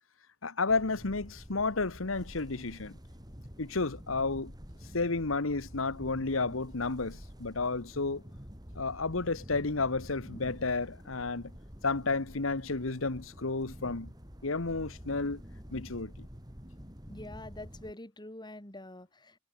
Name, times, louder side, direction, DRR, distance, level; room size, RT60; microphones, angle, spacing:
voice 1, 0.4-3.0 3.6-4.5 4.9-8.2 8.7-11.5 11.8-14.1 14.4-15.4 15.7-16.3, left 3 dB, 75° left, 1.4 m, -32 dB
sound 1, 0.7-17.9, equal, 20° right, 7.9 m, -48 dB
voice 2, 17.1-19.4, left 1 dB, 20° left, 4.2 m, -46 dB
head